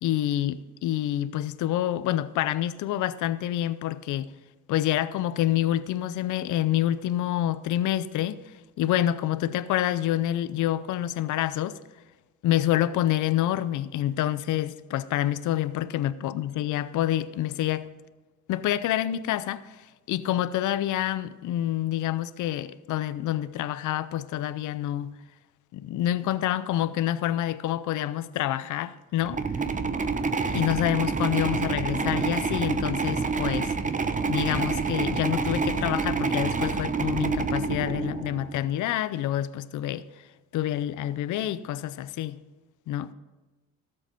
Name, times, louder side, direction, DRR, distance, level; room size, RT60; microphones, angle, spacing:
voice 1, 0.0-4.3 4.7-8.4 8.8-11.8 12.4-17.9 18.5-19.8 20.1-25.2 25.7-29.4 30.5-33.7 34.3-40.0 40.5-42.4 42.9-43.1, left 13 dB, 80° left, 0.6 m, -27 dB
sound 1, 29.2-38.6, right 4 dB, 25° right, 0.8 m, -27 dB
13.5 x 7.7 x 5.2 m
cardioid pair, 90°, 30 cm